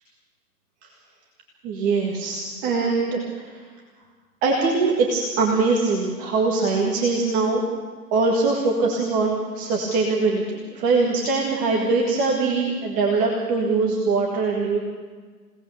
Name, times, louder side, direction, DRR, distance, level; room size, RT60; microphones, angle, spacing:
voice 1, 1.6-3.6 4.4-7.6 8.1-14.9, right 3 dB, 15° right, -1 dB, 1.8 m, -22 dB
27.5 x 18.0 x 6.8 m, 1.5 s
figure-of-eight pair, 130°, 47 cm